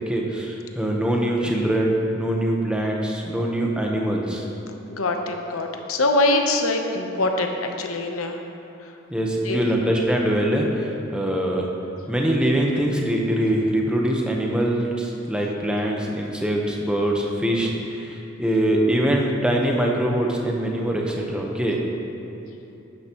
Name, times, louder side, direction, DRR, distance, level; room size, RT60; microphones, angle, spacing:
voice 1, 0.1-4.4 9.1-10.7 11.1-11.7 12.1-17.7 18.4-21.8, right 1 dB, 5° right, -1 dB, 0.9 m, -23 dB
voice 2, 4.9-8.4 9.4-9.6, left 2 dB, 80° left, 4 dB, 0.9 m, -23 dB
12.0 x 9.7 x 3.0 m, 2.9 s
head